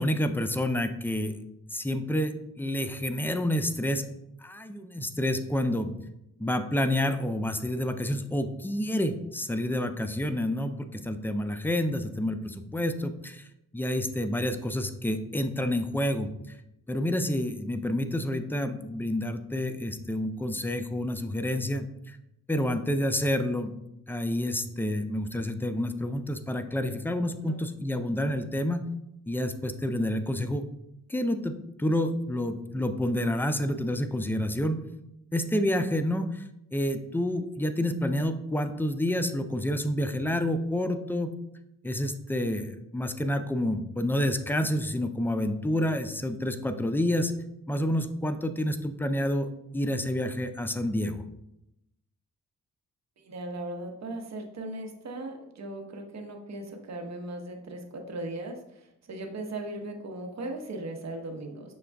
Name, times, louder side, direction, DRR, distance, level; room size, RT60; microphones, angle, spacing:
voice 1, 0.0-1.3 1.7-4.1 4.4-5.9 6.4-13.4 13.7-16.3 16.9-22.2 22.5-23.7 24.1-28.8 29.3-30.7 31.1-31.5 31.8-34.8 35.3-36.4 36.7-41.3 41.8-47.3 47.7-51.2, left 1 dB, 5° left, 9 dB, 0.4 m, -29 dB
voice 2, 53.2-61.7, right 2 dB, 55° right, 3 dB, 0.9 m, -38 dB
6.2 x 2.3 x 3.4 m, 0.84 s
cardioid pair, 60°, 32 cm